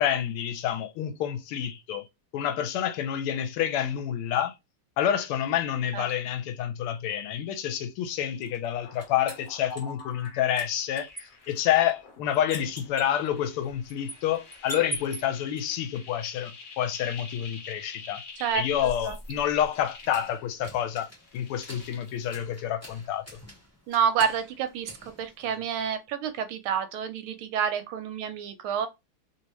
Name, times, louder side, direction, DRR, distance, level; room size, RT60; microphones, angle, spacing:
voice 1, 0.0-2.0 2.3-4.5 5.0-11.1 11.5-18.2 18.5-21.1 21.3-23.2, left 10 dB, 85° left, 1.5 m, -28 dB
sound 1, 8.4-10.3 10.6-15.6 18.4-25.9, right 1 dB, 10° left, 0.8 m, -44 dB
sound 2, 8.8-20.8 21.1-22.3, left 4 dB, 55° left, 1.2 m, -47 dB
voice 2, 23.9-28.9, right 8 dB, 80° right, 1.5 m, -28 dB
3.4 x 2.7 x 2.9 m
omnidirectional pair, 2.4 m